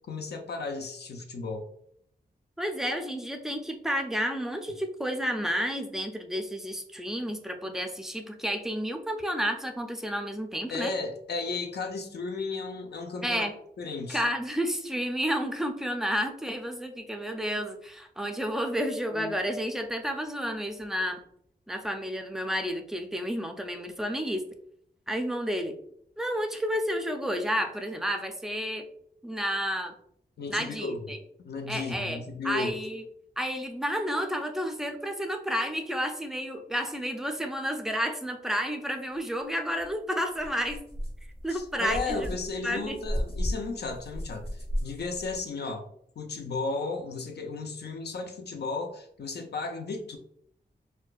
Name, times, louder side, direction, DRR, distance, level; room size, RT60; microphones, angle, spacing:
voice 1, 0.1-1.6 10.7-13.5 13.8-14.2 19.1-19.3 30.4-31.0 31.4-32.7 41.5-45.9 46.2-50.2, left 3 dB, 70° left, 4 dB, 0.5 m, -34 dB
voice 2, 2.6-10.9 13.2-13.5 14.1-21.2 21.7-24.4 25.1-25.7 26.2-28.9 29.2-29.9 30.5-31.2 31.7-33.0 33.4-40.8 41.4-42.3 42.6-43.0, equal, 5° right, 5 dB, 0.4 m, -31 dB
sound 1, 39.8-39.9 40.4-45.4, equal, 35° left, 0.8 m, -35 dB
4.3 x 2.2 x 2.3 m, 0.68 s
wide cardioid pair, 100°, 18 cm